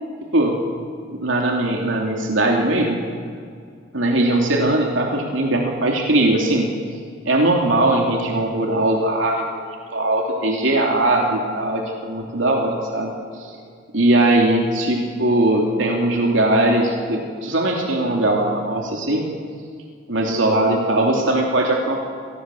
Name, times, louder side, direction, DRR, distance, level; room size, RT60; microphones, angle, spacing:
voice 1, 1.1-3.0 3.9-6.7 7.2-9.6 9.9-13.1 13.4-13.6 13.9-19.3 20.1-22.0, right 1 dB, 75° right, 0 dB, 3.1 m, -20 dB
27.5 x 20.0 x 7.9 m, 2.1 s
head